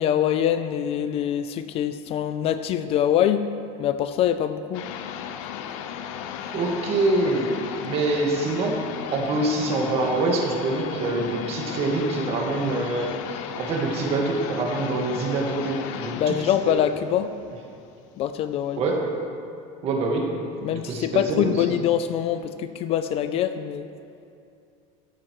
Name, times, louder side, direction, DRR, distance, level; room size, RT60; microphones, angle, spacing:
voice 1, 0.0-3.5 3.8-4.8 16.2-17.4 18.2-18.8 20.6-23.9, left 10 dB, 40° left, 10 dB, 0.4 m, -24 dB
sound 1, 4.7-18.2, left 8 dB, 85° left, 0.8 m, -35 dB
voice 2, 6.5-8.8 9.1-16.8 18.8-19.2 19.8-20.4 20.7-21.7, right 2 dB, 40° right, 1 dB, 1.7 m, -25 dB
15.0 x 12.0 x 3.1 m, 2.5 s
cardioid pair, 160°, 16 cm